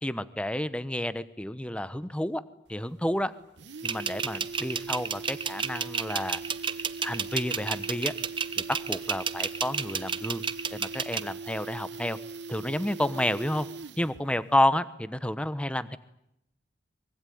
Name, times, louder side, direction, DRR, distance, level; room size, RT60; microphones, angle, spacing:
voice 1, 0.0-2.4 2.7-3.3 3.8-6.4 7.0-8.1 8.7-10.4 10.7-12.2 12.5-13.7 14.0-16.0, left 1 dB, 5° left, 15 dB, 1.0 m, -30 dB
sound 1, 2.7-2.8 3.1-3.2 3.4-14.3 14.5-14.6, right 4 dB, 80° right, 1.3 m, -41 dB
sound 2, 3.8-11.2, right 6 dB, 30° right, 1.0 m, -30 dB
24.0 x 23.5 x 9.5 m, 0.81 s
head